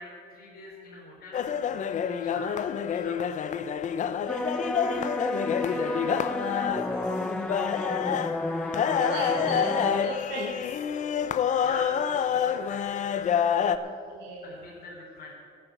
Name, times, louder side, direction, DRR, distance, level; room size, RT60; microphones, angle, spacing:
voice 1, 0.0-3.7 4.4-5.1 5.6-8.3 8.8-10.2 11.6-13.3 13.6-13.8 14.4-15.3, left 2 dB, 65° left, -4 dB, 3.7 m, -45 dB
sound 1, 1.3-13.8, left 8 dB, 45° left, 0.7 m, -28 dB
sound 2, 4.3-10.0, left 1 dB, 5° left, 0.4 m, -31 dB
voice 2, 8.8-10.8 13.8-14.6, right 2 dB, 85° right, -1 dB, 1.5 m, -37 dB
12.0 x 8.6 x 7.8 m, 2.3 s
cardioid pair, 110°, 17 cm